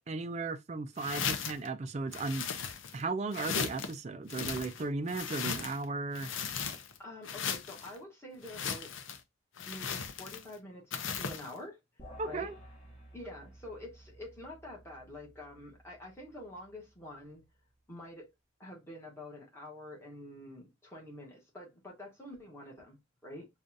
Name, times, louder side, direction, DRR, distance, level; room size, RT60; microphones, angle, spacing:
voice 1, 0.0-2.5 2.9-6.3 12.2-12.5, right 3 dB, 35° right, 0.4 m, -36 dB
sound 1, 1.0-1.7 2.1-3.0 3.3-3.9 4.3-5.8 6.1-7.0 7.2-7.9 8.4-9.2 9.6-10.5 10.9-11.5, left 6 dB, 80° left, 0.5 m, -37 dB
voice 2, 7.0-8.9 9.7-11.8 12.2-12.5 13.1-17.4 17.9-18.3 18.6-23.0 23.2-23.5, left 1 dB, 15° left, 1.2 m, -47 dB
sound 2, 12.0-17.5, equal, 35° left, 1.5 m, -55 dB
5.1 x 2.4 x 2.6 m
head